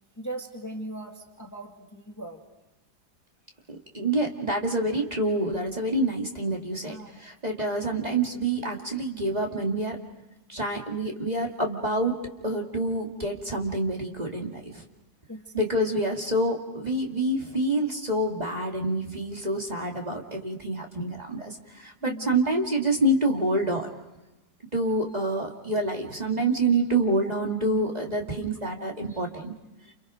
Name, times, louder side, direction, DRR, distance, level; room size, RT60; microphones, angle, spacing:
voice 1, 0.2-2.4 6.8-7.2 15.3-15.6 22.0-22.3, right 1 dB, 10° left, 2 dB, 1.9 m, -39 dB
voice 2, 3.7-10.0 10.5-14.8 15.5-23.9 24.7-29.5, right 1 dB, 25° right, 0 dB, 2.4 m, -27 dB
30.0 x 29.0 x 5.2 m, 1.0 s
omnidirectional pair, 1.7 m